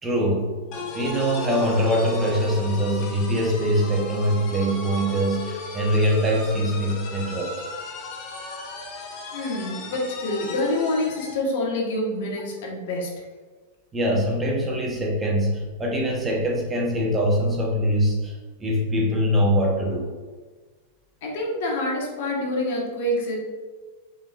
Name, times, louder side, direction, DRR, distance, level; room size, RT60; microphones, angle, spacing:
voice 1, 0.0-7.6 13.9-20.1, equal, 15° right, -2 dB, 1.1 m, -23 dB
sound 1, 0.7-11.5, left 3 dB, 45° left, 1.0 m, -35 dB
voice 2, 9.3-13.2 21.2-23.3, left 1 dB, 65° left, -2 dB, 1.4 m, -26 dB
5.1 x 3.8 x 2.5 m, 1.4 s
hypercardioid pair, 115°, 0 cm